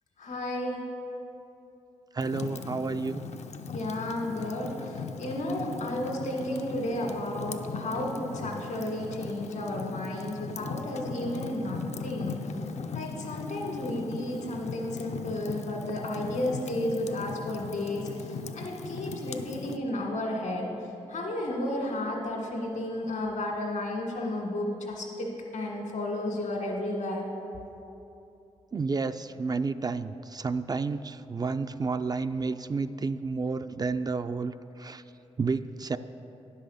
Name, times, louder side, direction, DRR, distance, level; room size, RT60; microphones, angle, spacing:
voice 1, 0.2-0.8 3.7-12.4 12.9-20.7 21.1-27.2, left 1 dB, 75° left, 0 dB, 1.8 m, -32 dB
Fire, 2.2-19.8, left 4 dB, 60° left, 0.5 m, -39 dB
voice 2, 2.2-3.2 28.7-34.5 34.8-35.0 35.4-36.0, right 4 dB, 30° right, 10 dB, 0.3 m, -30 dB
10.0 x 5.6 x 6.4 m, 2.9 s
cardioid pair, 55°, 13 cm